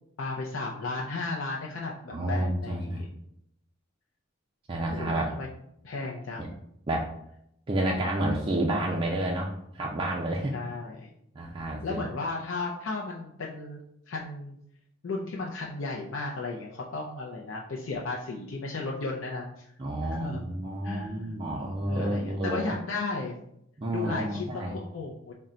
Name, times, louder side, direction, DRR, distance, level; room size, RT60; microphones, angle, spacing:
voice 1, 0.2-3.1 4.9-5.5 5.8-6.4 10.5-11.1 11.8-13.8 14.1-14.6 15.0-19.6 20.2-20.4 20.8-23.4 23.9-25.3, left 3 dB, 75° left, -2 dB, 0.5 m, -35 dB
voice 2, 2.1-3.0 4.7-5.3 6.4-6.5 6.9-7.1 7.7-10.6 11.4-12.0 19.8-22.8 23.8-24.8, right 1 dB, 25° right, -2 dB, 0.4 m, -30 dB
3.7 x 2.2 x 4.2 m, 0.74 s
head